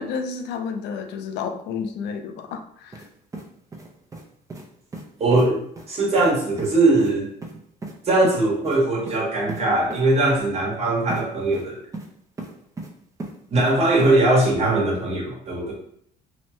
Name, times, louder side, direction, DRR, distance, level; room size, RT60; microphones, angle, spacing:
voice 1, 0.0-3.0, left 5 dB, 85° left, 6 dB, 0.4 m, -31 dB
sound 1, 2.9-3.1 3.3-4.2 4.5-4.7 4.9-5.0 5.3-5.5 5.8-5.9 6.2-6.3 6.6-6.7 7.0-7.1 7.4-7.9 8.2-8.4 8.6-8.8 9.1-9.2 9.5-9.6 9.9-10.0 11.1-11.2 11.5-12.1 12.4-12.9 13.2-13.7 14.0-14.1, right 2 dB, 20° right, 0.5 m, -36 dB
voice 2, 5.2-7.3 8.1-11.8 13.5-15.7, right 2 dB, 40° right, -3 dB, 1.1 m, -20 dB
2.8 x 2.1 x 3.0 m, 0.66 s
cardioid pair, 110°, 17 cm